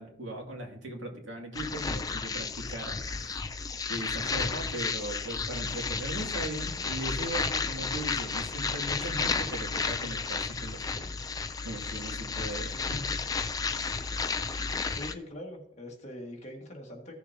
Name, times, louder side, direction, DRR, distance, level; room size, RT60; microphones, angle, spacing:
voice 1, 0.0-3.6 3.9-11.1 11.6-13.1, right 1 dB, 90° right, 0 dB, 2.3 m, -38 dB
Space Static, 1.5-15.1, left 4 dB, 20° left, 0.4 m, -32 dB
voice 2, 14.9-17.2, left 1 dB, 35° left, 0 dB, 1.8 m, -42 dB
15.5 x 6.7 x 2.8 m, 0.68 s
head